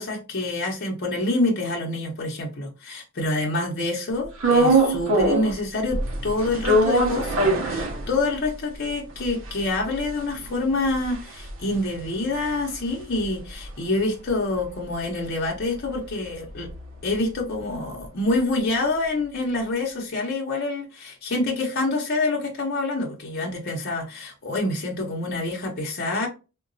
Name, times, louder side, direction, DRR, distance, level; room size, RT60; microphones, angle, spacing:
voice 1, 0.0-16.7 17.0-26.3, left 2 dB, 50° left, 0.7 m, -27 dB
sound 1, 4.4-5.6 5.9-8.5 8.9-9.0 9.2-13.7 14.0-18.1, right 2 dB, 65° right, 0.6 m, -24 dB
3.8 x 2.2 x 2.5 m
head